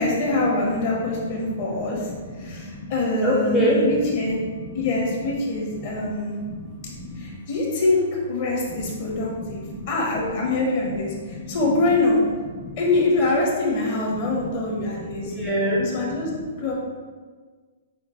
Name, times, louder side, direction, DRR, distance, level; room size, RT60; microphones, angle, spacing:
voice 1, 0.0-2.1 2.4-4.4 4.7-6.4 7.2-9.6 9.9-12.2 12.8-15.4 15.8-16.3 16.6-16.7, left 2 dB, 40° left, -3 dB, 1.1 m, -24 dB
voice 2, 1.3-1.7 2.1-2.9 3.2-4.2 4.4-4.9 5.8-6.1 6.4-7.3 8.8-8.9 9.4-9.9 11.2-11.6 12.6-12.8 14.2-16.2, equal, ahead, -6 dB, 0.5 m, -28 dB
5.7 x 2.1 x 4.3 m, 1.5 s
hypercardioid pair, 165°, 0 cm